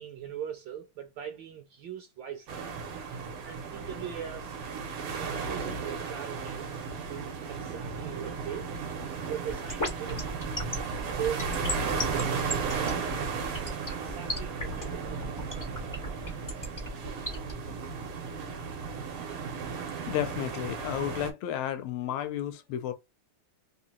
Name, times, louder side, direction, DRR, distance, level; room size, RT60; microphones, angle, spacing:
voice 1, 0.0-2.6 3.4-4.6 5.2-6.7 7.1-8.7 9.3-10.2 10.9-15.8, right 9 dB, 70° right, 1.2 m, -40 dB
sound 1, 2.5-21.3, right 5 dB, 85° right, 1.8 m, -35 dB
sound 2, 9.5-17.5, left 1 dB, 25° left, 0.4 m, -34 dB
voice 2, 20.1-22.9, left 11 dB, 75° left, 1.4 m, -32 dB
3.9 x 2.6 x 2.7 m
omnidirectional pair, 2.4 m